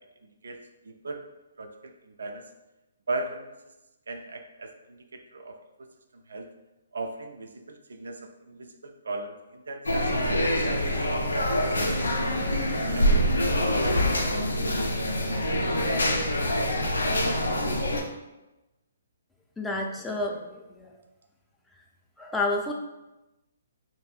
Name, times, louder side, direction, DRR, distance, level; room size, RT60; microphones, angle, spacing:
voice 1, 0.2-0.6 0.8-1.3 1.6-2.5 3.1-3.5 4.1-5.6 6.1-6.5 6.9-10.8 11.1-12.2 12.7-13.1, right 2 dB, 75° right, 5 dB, 0.3 m, -38 dB
sound 1, 9.9-18.0, equal, 90° left, 0.4 m, -25 dB
voice 2, 19.6-20.9 22.2-22.7, left 2 dB, 5° left, 0 dB, 0.3 m, -30 dB
2.6 x 2.5 x 2.3 m, 1.0 s
hypercardioid pair, 140°, 0 cm